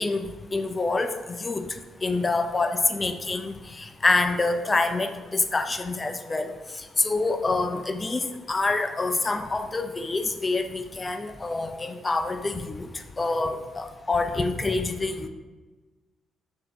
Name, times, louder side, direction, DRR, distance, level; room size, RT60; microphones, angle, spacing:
voice 1, 0.0-1.7 2.0-6.5 7.0-12.9 13.2-15.3, left 3 dB, 25° left, 7 dB, 0.3 m, -26 dB
3.1 x 2.7 x 4.0 m, 1.3 s
figure-of-eight pair, 40°, 0 cm